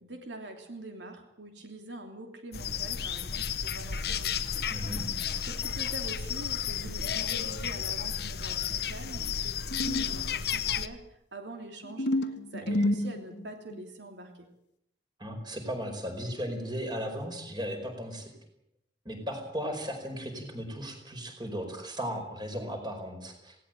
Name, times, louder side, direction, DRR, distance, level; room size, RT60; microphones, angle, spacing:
voice 1, 0.0-5.0 5.4-14.5, right 1 dB, 75° right, 4 dB, 3.0 m, -44 dB
sound 1, 2.5-10.9, left 8 dB, 60° left, 1.1 m, -32 dB
voice 2, 4.7-5.0 15.2-18.3 19.0-23.5, equal, 25° right, 5 dB, 4.9 m, -36 dB
sound 2, 9.7-10.3 11.8-13.8, left 1 dB, 75° left, 1.6 m, -29 dB
19.0 x 18.0 x 9.0 m, 0.77 s
head